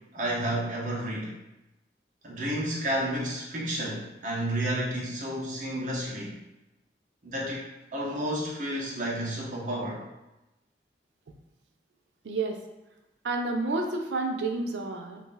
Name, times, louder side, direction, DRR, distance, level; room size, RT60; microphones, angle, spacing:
voice 1, 0.1-1.3 2.2-6.3 7.2-7.6 7.9-10.0, right 1 dB, 45° right, -5 dB, 0.8 m, -31 dB
voice 2, 12.2-12.6 13.2-15.2, right 3 dB, 90° right, 4 dB, 0.5 m, -30 dB
2.7 x 2.6 x 3.8 m, 0.96 s
head